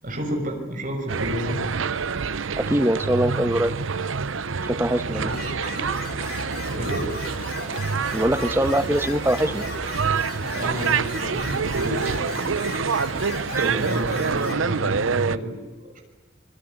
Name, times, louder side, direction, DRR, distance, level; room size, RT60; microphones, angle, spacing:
voice 1, 0.0-1.6 5.0-5.9 6.5-7.1 10.5-12.9 13.6-16.0, equal, 45° right, 3 dB, 6.6 m, -32 dB
sound 1, 1.1-15.4, right 5 dB, 85° right, 0.7 m, -27 dB
voice 2, 2.6-3.7 4.6-5.3 8.1-9.6 13.4-13.8, right 1 dB, 10° right, 10 dB, 1.1 m, -23 dB
sound 2, 5.2-14.5, left 3 dB, 50° left, 4.4 m, -36 dB
25.0 x 22.0 x 9.7 m, 1.3 s
head